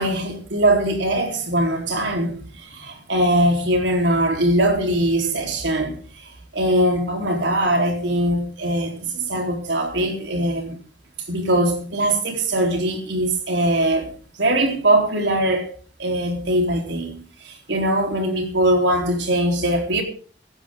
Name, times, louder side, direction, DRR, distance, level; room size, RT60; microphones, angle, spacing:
voice 1, 0.0-10.8 11.3-14.1 14.4-15.7 16.0-20.0, right 1 dB, 85° right, 4.0 m, -21 dB
16.5 x 15.0 x 3.8 m
head